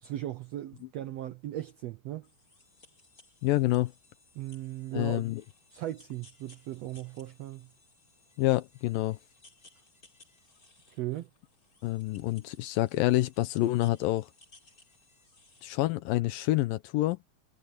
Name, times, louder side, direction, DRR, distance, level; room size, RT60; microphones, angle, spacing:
voice 1, 0.0-2.3 4.3-5.2 5.7-7.7 10.9-11.3, right 14 dB, 85° right, 1.4 m, -37 dB
sound 1, 2.2-15.7, left 3 dB, 25° left, 4.5 m, -61 dB
voice 2, 3.4-3.9 4.9-5.4 8.4-9.2 11.8-14.3 15.6-17.2, left 17 dB, 85° left, 2.5 m, -27 dB
omnidirectional pair, 4.0 m